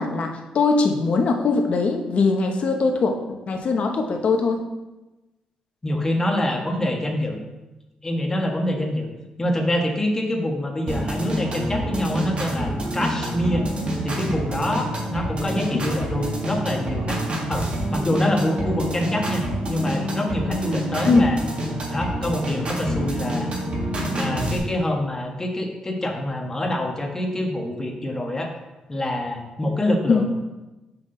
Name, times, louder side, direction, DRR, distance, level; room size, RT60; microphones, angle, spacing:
voice 1, 0.0-3.1 3.5-4.6 15.7-15.8 21.1-21.2 30.1-30.2, left 4 dB, 60° left, 3 dB, 1.1 m, -21 dB
voice 2, 5.8-7.4 8.0-9.1 9.4-13.7 14.0-17.2 17.5-21.4 21.9-23.5 24.0-28.5 28.9-30.3, left 1 dB, 20° left, 2 dB, 1.4 m, -25 dB
sound 1, 10.9-24.6, right 1 dB, 50° right, 1.9 m, -27 dB
6.0 x 5.9 x 3.9 m, 1.1 s
cardioid pair, 75°, 2 cm